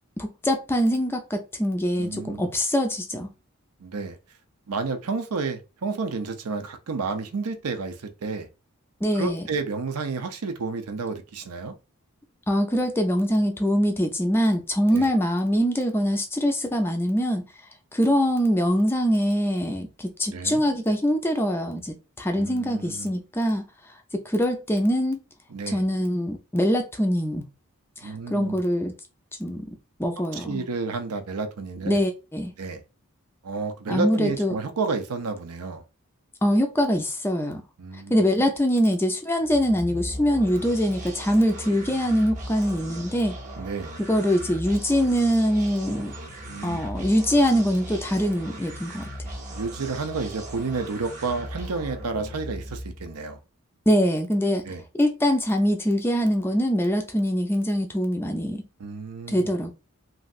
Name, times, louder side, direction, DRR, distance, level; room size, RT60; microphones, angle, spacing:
voice 1, 0.2-3.3 9.0-9.4 12.5-17.4 17.9-23.6 24.1-25.2 25.7-27.5 28.0-28.9 29.4-29.7 30.0-30.6 31.9-32.5 33.9-34.5 36.4-37.6 38.1-43.4 44.1-46.1 46.6-49.1 53.9-54.7 54.9-58.6 59.3-59.7, equal, 10° left, 0.4 m, -23 dB
voice 2, 2.0-2.4 3.8-4.2 4.7-8.5 9.1-11.7 14.9-15.1 20.3-20.6 22.3-23.1 25.5-25.8 28.0-28.6 30.2-32.0 32.6-32.8 33.4-35.8 37.8-38.2 43.6-43.9 46.4-46.9 49.5-53.4 54.6-54.8 58.8-59.5, right 4 dB, 80° right, 0.6 m, -31 dB
sound 1, 39.4-53.2, equal, 35° right, 0.7 m, -38 dB
3.1 x 2.6 x 2.4 m
head